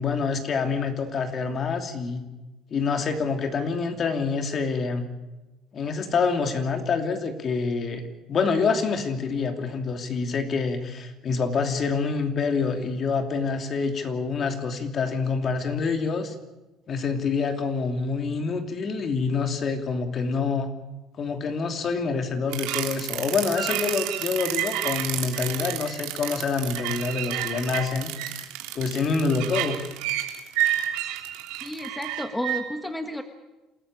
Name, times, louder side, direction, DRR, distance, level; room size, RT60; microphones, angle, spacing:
voice 1, 0.0-2.3 2.7-5.1 5.7-16.3 16.9-20.7 21.2-28.1 28.7-29.8, left 4 dB, 40° left, 6 dB, 2.9 m, -26 dB
sound 1, 22.5-32.6, right 13 dB, 90° right, 3.1 m, -30 dB
voice 2, 31.6-33.2, left 1 dB, 5° left, 7 dB, 1.4 m, -32 dB
27.5 x 14.0 x 8.9 m, 1.1 s
cardioid pair, 120°, 0 cm